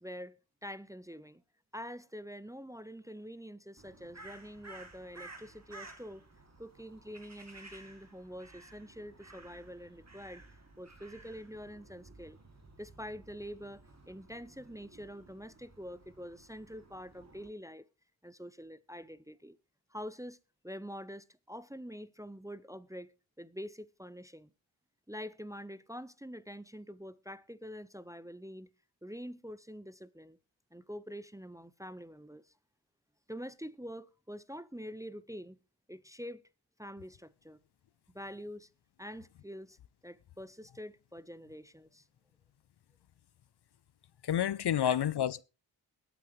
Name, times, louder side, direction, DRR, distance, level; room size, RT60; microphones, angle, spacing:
voice 1, 0.0-1.4 1.7-6.2 6.6-10.4 10.8-12.4 12.8-17.9 18.2-19.6 19.9-20.4 20.6-23.1 23.4-24.5 25.1-28.7 29.0-30.4 30.7-32.5 33.3-35.6 35.9-36.4 36.8-37.6 38.1-38.7 39.0-39.8 40.0-42.0 44.7-45.0, equal, 5° right, 0.6 m, -46 dB
Crow, 3.8-17.5, right 2 dB, 30° right, 2.6 m, -55 dB
voice 2, 44.2-45.4, left 10 dB, 55° left, 0.6 m, -29 dB
21.5 x 9.1 x 3.1 m
cardioid pair, 50°, 49 cm